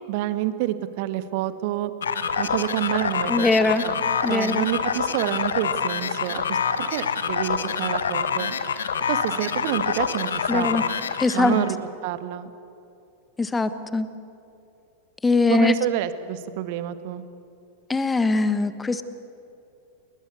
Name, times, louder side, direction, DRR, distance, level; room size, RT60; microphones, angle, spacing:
voice 1, 0.1-1.9 2.4-6.6 6.9-8.5 9.1-10.9 11.3-11.8 12.0-12.5 15.5-17.2, right 13 dB, 50° right, 12 dB, 1.5 m, -28 dB
sound 1, 2.0-11.7, left 6 dB, 65° left, 1.4 m, -26 dB
voice 2, 3.3-3.9 4.2-4.7 10.5-10.8 11.2-11.6 13.4-14.1 15.2-15.7 17.9-19.0, left 3 dB, 10° left, 12 dB, 1.4 m, -21 dB
29.5 x 20.5 x 8.2 m, 2.7 s
figure-of-eight pair, 90°, 0 cm